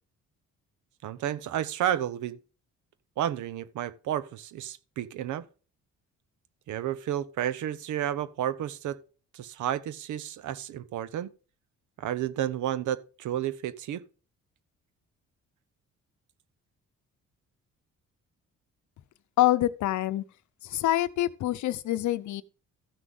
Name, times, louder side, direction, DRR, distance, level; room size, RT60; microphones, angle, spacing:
voice 1, 1.0-2.4 3.2-5.5 6.7-9.0 9.3-11.3 12.0-14.0, right 11 dB, 75° right, 0.8 m, -31 dB
voice 2, 19.4-20.2 20.6-22.4, left 14 dB, 70° left, 0.7 m, -26 dB
14.0 x 6.2 x 3.6 m
cardioid pair, 90°, 30 cm